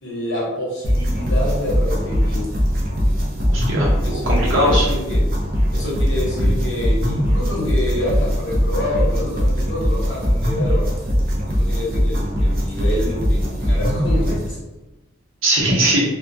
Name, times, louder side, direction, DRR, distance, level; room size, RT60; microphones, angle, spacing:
voice 1, 0.0-2.5 4.0-5.3 5.7-10.8 11.5-14.6, left 1 dB, 60° left, -5 dB, 0.9 m, -27 dB
sound 1, 0.8-14.5, equal, 45° right, 0.5 m, -20 dB
voice 2, 3.5-4.9 15.4-16.0, right 1 dB, 75° right, -5 dB, 0.8 m, -19 dB
2.2 x 2.1 x 2.6 m, 1.0 s
head